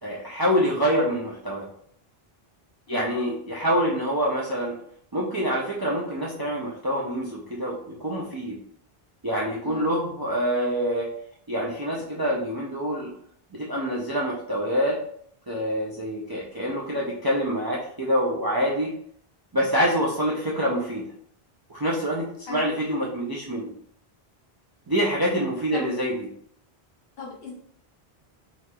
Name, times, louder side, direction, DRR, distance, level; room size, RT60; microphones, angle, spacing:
voice 1, 0.0-1.7 2.9-4.8 5.1-8.6 9.2-11.1 11.5-13.1 13.5-15.0 15.5-18.9 19.5-21.0 21.7-23.7 24.9-26.3, equal, 40° right, -4 dB, 0.3 m, -26 dB
voice 2, 9.6-9.9 22.5-22.6 25.7-25.9 27.2-27.5, left 4 dB, 70° left, -2 dB, 1.0 m, -38 dB
2.9 x 2.8 x 2.2 m, 0.65 s
omnidirectional pair, 1.0 m